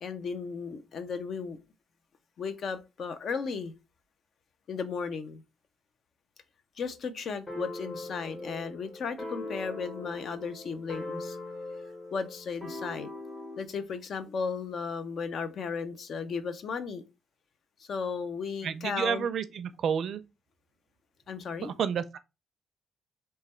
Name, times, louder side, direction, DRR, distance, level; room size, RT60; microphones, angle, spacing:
voice 1, 0.0-1.6 2.4-3.7 4.7-5.4 6.8-11.4 12.1-13.1 13.6-17.0 17.8-19.3 21.3-21.7, left 5 dB, 60° left, 0.5 m, -35 dB
sound 1, 7.5-13.7, left 2 dB, 30° left, 1.2 m, -41 dB
voice 2, 18.6-20.2 21.6-22.2, right 7 dB, 60° right, 0.4 m, -30 dB
3.2 x 2.2 x 4.2 m
cardioid pair, 90°, 0 cm